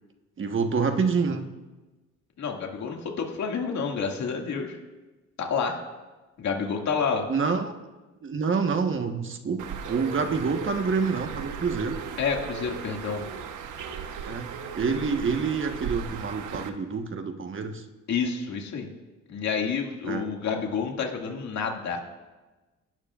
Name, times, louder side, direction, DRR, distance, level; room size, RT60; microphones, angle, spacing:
voice 1, 0.4-1.5 7.3-7.7 8.2-12.0 14.3-17.8 20.0-20.2, right 5 dB, 40° right, 5 dB, 1.4 m, -27 dB
voice 2, 2.4-4.8 5.4-5.8 6.4-7.3 12.2-13.2 18.1-18.9 19.3-22.0, left 5 dB, 65° left, 1 dB, 2.2 m, -29 dB
Bird, 9.6-16.7, right 6 dB, 80° right, 1.2 m, -37 dB
28.0 x 12.0 x 2.5 m, 1.2 s
cardioid pair, 90°, 30 cm